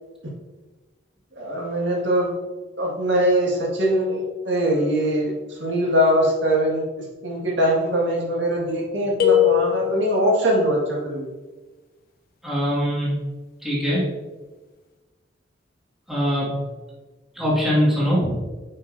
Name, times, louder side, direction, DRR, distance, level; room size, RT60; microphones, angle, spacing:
voice 1, 1.4-2.3 2.8-6.8 7.2-11.3, equal, 75° right, -3 dB, 2.0 m, -22 dB
sound 1, 9.2-10.4, left 12 dB, 50° left, 0.8 m, -20 dB
voice 2, 12.4-13.2 13.6-14.1 16.1-16.5 17.4-18.4, equal, ahead, -7 dB, 2.2 m, -22 dB
9.2 x 5.5 x 2.8 m, 1.2 s
head